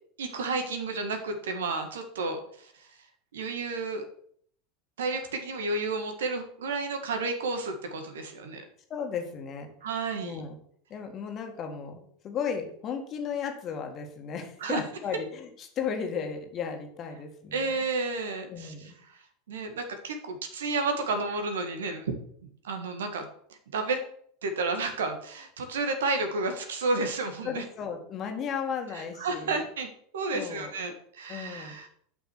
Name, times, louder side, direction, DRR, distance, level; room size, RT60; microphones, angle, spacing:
voice 1, 0.2-2.9 3.3-4.1 5.0-8.6 9.8-10.4 14.6-14.8 17.5-18.9 19.5-22.1 22.6-24.0 24.4-27.6 28.9-29.9 30.1-31.9, right 3 dB, 70° right, 7 dB, 1.8 m, -31 dB
voice 2, 8.9-9.7 10.2-10.6 10.9-17.8 18.5-19.0 27.4-29.6 30.3-30.7 31.3-31.8, left 6 dB, 35° left, 4 dB, 2.1 m, -35 dB
11.0 x 5.9 x 6.2 m, 0.62 s
figure-of-eight pair, 80°, 0 cm